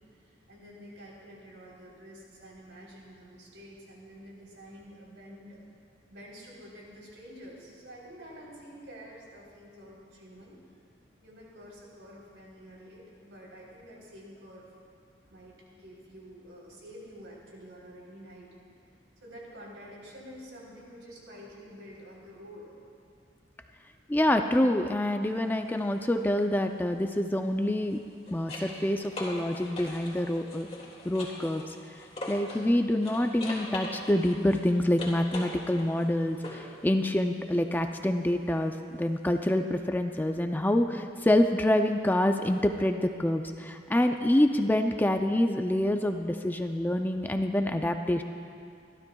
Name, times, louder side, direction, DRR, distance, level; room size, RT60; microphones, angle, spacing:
voice 1, 0.1-5.6 6.1-10.6 11.2-14.7 15.2-18.5 19.2-22.8, equal, 85° right, -4 dB, 3.6 m, -48 dB
voice 2, 24.1-28.0 28.3-30.7 31.0-31.8 32.3-48.2, left 1 dB, 10° left, 5 dB, 0.4 m, -26 dB
sound 1, 25.2-25.5 27.8-32.7 33.0-36.8 39.4-39.5, left 1 dB, 35° left, 2.1 m, -42 dB
25.0 x 12.5 x 2.3 m, 2.3 s
head